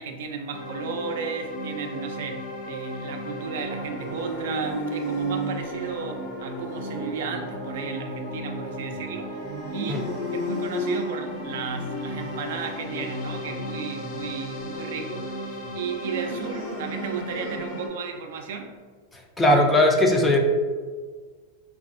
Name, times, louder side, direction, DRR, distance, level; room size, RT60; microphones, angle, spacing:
voice 1, 0.0-18.7, right 5 dB, 75° right, 4 dB, 0.4 m, -34 dB
sound 1, 0.5-17.9, equal, 50° left, 0.7 m, -36 dB
sound 2, 3.7-18.1, right 1 dB, 30° right, 0.6 m, -36 dB
voice 2, 19.4-20.4, left 1 dB, 10° left, 1 dB, 0.3 m, -18 dB
3.3 x 2.4 x 2.5 m, 1.5 s
supercardioid pair, 150°, 0 cm